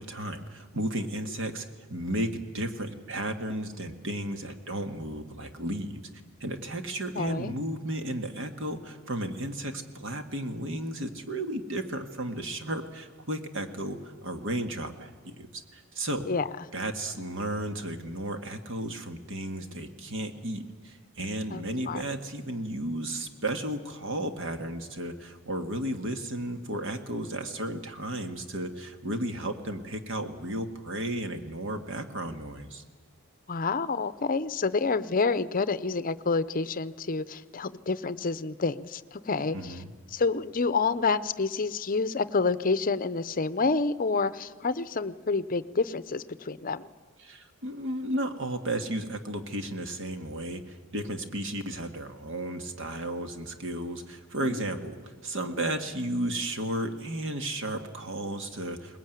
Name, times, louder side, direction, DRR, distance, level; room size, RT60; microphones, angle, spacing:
voice 1, 0.0-6.0 6.4-16.3 16.7-32.8 39.5-39.9 47.2-59.0, right 1 dB, 60° right, 6 dB, 1.8 m, -34 dB
voice 2, 7.1-7.5 16.3-16.5 21.5-22.0 33.5-39.8 40.1-46.9 54.4-54.6, left 4 dB, 40° left, 15 dB, 0.6 m, -28 dB
21.5 x 20.0 x 9.2 m, 1.5 s
head